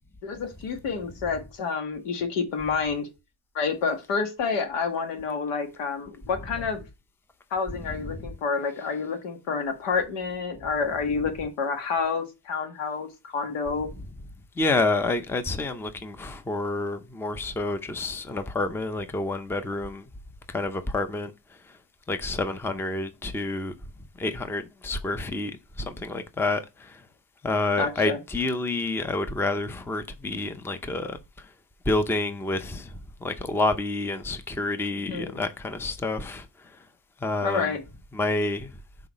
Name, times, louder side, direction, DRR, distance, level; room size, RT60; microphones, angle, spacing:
voice 1, 0.2-3.1 3.5-6.8 7.5-13.9 27.8-28.2 35.1-35.4 37.4-37.8, left 5 dB, 90° left, 1.7 m, -29 dB
voice 2, 14.6-20.1 20.5-21.3 22.1-23.7 24.2-25.5 25.8-27.0 27.4-31.2 31.9-32.9 33.2-36.5 37.2-37.8 38.1-38.7, left 2 dB, 5° left, 0.5 m, -28 dB
5.7 x 3.9 x 5.1 m
cardioid pair, 135°, 42 cm